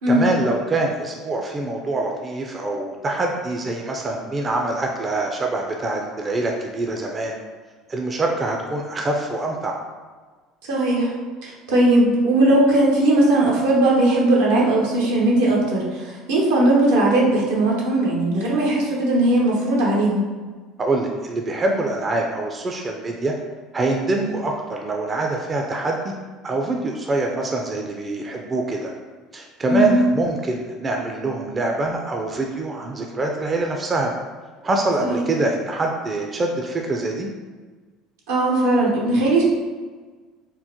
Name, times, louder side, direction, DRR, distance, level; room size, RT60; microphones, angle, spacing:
voice 1, 0.1-7.4 7.9-9.8 20.8-23.3 23.7-26.1 26.4-28.9 29.3-34.1 34.6-37.3, right 2 dB, 30° right, 1 dB, 0.4 m, -24 dB
voice 2, 10.7-11.1 11.4-20.2 29.7-30.1 35.0-35.3 38.3-39.4, right 1 dB, 85° right, -4 dB, 0.8 m, -18 dB
3.6 x 2.1 x 2.8 m, 1.4 s
supercardioid pair, 85°, 0 cm